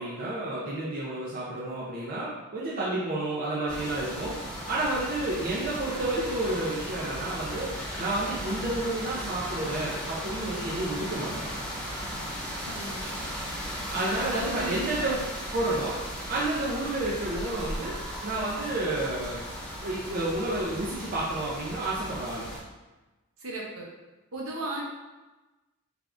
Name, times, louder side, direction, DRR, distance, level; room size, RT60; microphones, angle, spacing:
voice 1, 0.0-4.3 4.7-7.7 8.0-11.3 13.9-15.2 15.5-16.0 16.3-17.9 18.2-19.5 19.8-22.5, right 2 dB, 40° right, -6 dB, 0.5 m, -30 dB
sound 1, 3.7-22.6, equal, 5° left, 0.6 m, -36 dB
voice 2, 12.7-13.2 14.2-14.9 23.4-23.9 24.3-24.8, right 1 dB, 70° right, -3 dB, 0.8 m, -36 dB
3.5 x 3.4 x 2.5 m, 1.1 s
head